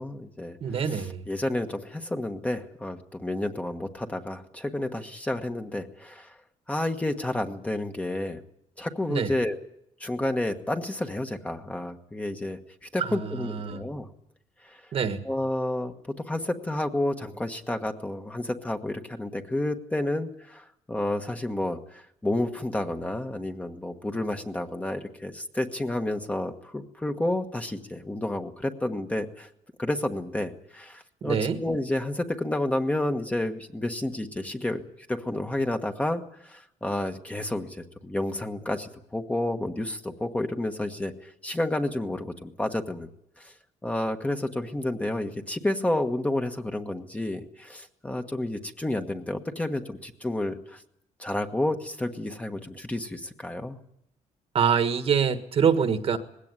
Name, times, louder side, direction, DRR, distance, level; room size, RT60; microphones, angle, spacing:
voice 1, 0.0-6.3 6.7-8.4 8.8-9.6 10.0-14.1 14.6-14.8 15.2-15.9 16.2-29.5 29.8-34.8 35.1-37.8 38.0-43.1 43.4-43.5 43.8-50.8 51.2-53.8, left 1 dB, 10° left, 5 dB, 1.3 m, -30 dB
voice 2, 0.6-1.2 9.1-9.3 13.0-13.8 14.9-15.2 31.2-31.6 54.5-56.2, right 7 dB, 45° right, 9 dB, 1.6 m, -25 dB
20.0 x 16.5 x 9.7 m, 0.77 s
cardioid pair, 135°, 13 cm